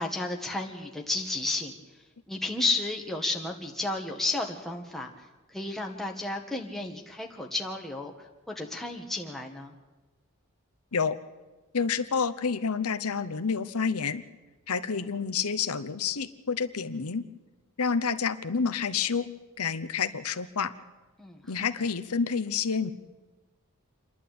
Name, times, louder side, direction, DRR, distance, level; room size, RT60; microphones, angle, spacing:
voice 1, 0.0-1.7 2.3-5.1 5.5-8.1 8.5-9.7 21.2-21.4, left 2 dB, ahead, 1 dB, 1.8 m, -32 dB
voice 2, 11.7-14.2 14.7-17.2 17.8-19.3 19.6-20.7 21.5-22.9, left 5 dB, 90° left, 11 dB, 0.9 m, -29 dB
28.0 x 11.0 x 8.7 m, 1.2 s
head